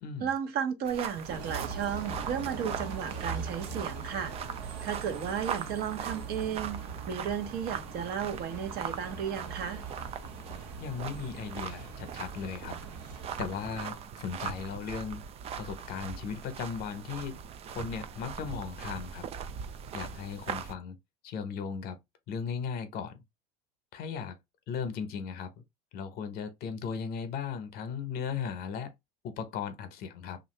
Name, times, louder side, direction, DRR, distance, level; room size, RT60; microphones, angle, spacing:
voice 1, 0.2-4.3 4.8-6.8 7.1-9.8, right 8 dB, 50° right, 0.9 m, -34 dB
sound 1, 0.8-20.7, right 7 dB, 30° right, 0.4 m, -41 dB
Bus, 1.3-13.8, right 5 dB, 80° right, 1.1 m, -41 dB
voice 2, 10.8-12.8 13.4-15.2 15.6-17.4 17.7-19.2 19.9-21.0 21.2-22.0 22.3-23.2 23.9-24.3 24.7-25.5 25.9-28.9 29.2-30.4, left 6 dB, 50° left, 0.9 m, -37 dB
2.7 x 2.5 x 3.2 m
supercardioid pair, 110°, 21 cm